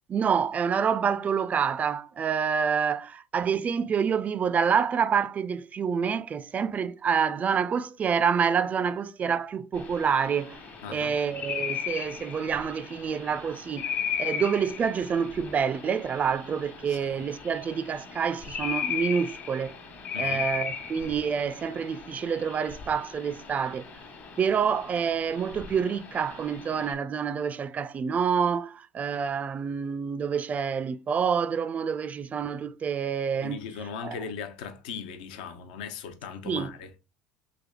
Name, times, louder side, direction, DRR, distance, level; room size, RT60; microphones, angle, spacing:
voice 1, 0.1-10.6 10.9-13.9 14.2-19.7 20.2-23.8 24.4-33.6 34.0-34.2 36.5-36.7, right 6 dB, 30° right, 0.3 m, -27 dB
sound 1, 9.7-26.9, left 7 dB, 45° left, 1.2 m, -37 dB
voice 2, 10.8-11.1 16.9-17.3 20.1-20.4 33.4-36.9, left 6 dB, 70° left, 0.6 m, -38 dB
3.4 x 3.2 x 2.2 m
hypercardioid pair, 70°, 5 cm